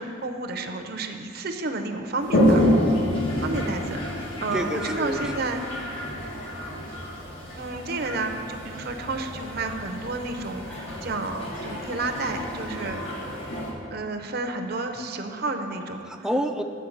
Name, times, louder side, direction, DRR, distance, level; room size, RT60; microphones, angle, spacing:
voice 1, 0.0-2.7 3.4-4.0 4.4-5.6 7.6-13.0 13.9-16.3, right 3 dB, 50° right, 6 dB, 0.6 m, -31 dB
Toilet flush, 2.2-13.7, left 1 dB, 70° left, 1.7 m, -28 dB
voice 2, 4.5-6.1 6.5-6.8 16.1-16.6, equal, 5° right, 5 dB, 0.4 m, -30 dB
10.5 x 4.6 x 7.1 m, 2.5 s
head